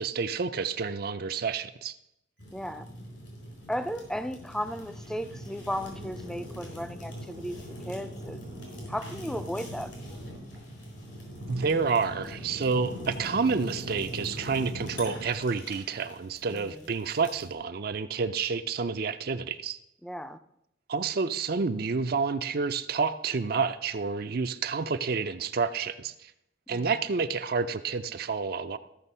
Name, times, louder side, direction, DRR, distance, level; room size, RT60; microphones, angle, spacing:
voice 1, 0.0-2.0 11.5-19.8 20.9-26.3 26.7-28.8, right 5 dB, 50° right, 10 dB, 0.5 m, -29 dB
Fire, 2.4-17.5, equal, 80° left, 4.5 m, -41 dB
voice 2, 2.5-2.9 3.7-8.5 8.9-10.0 16.5-16.8 20.0-20.4 26.7-26.9, equal, 5° left, 11 dB, 0.4 m, -35 dB
14.0 x 6.7 x 5.5 m, 0.82 s
head